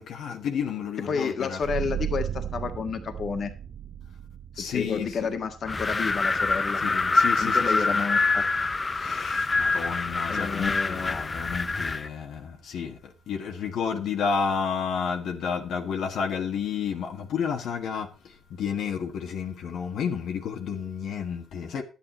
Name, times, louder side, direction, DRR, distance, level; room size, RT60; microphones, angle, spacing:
voice 1, 0.0-1.6 4.6-5.3 6.8-8.0 8.9-21.8, left 6 dB, 75° left, 1.5 m, -31 dB
voice 2, 1.1-3.5 4.7-6.8 7.4-8.4 10.3-11.2, left 5 dB, 55° left, 1.6 m, -30 dB
sound 1, 1.6-12.9, right 9 dB, 50° right, 0.8 m, -39 dB
Wind, 5.7-12.1, left 3 dB, 25° left, 0.5 m, -25 dB
11.0 x 8.8 x 4.2 m
cardioid pair, 90°, 0 cm